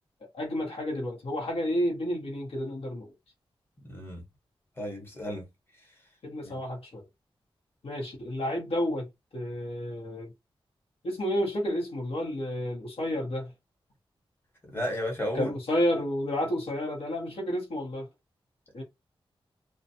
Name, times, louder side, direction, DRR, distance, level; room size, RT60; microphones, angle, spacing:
voice 1, 0.3-3.1 6.2-7.0 7.8-9.1 9.3-10.3 11.0-13.5 15.3-18.1 18.7-18.8, equal, 75° left, 1.1 m, -30 dB
voice 2, 3.9-4.2 4.8-5.4 6.4-6.6 14.7-15.5, left 1 dB, 25° left, 1.1 m, -33 dB
2.4 x 2.2 x 2.7 m
wide cardioid pair, 95°, 10 cm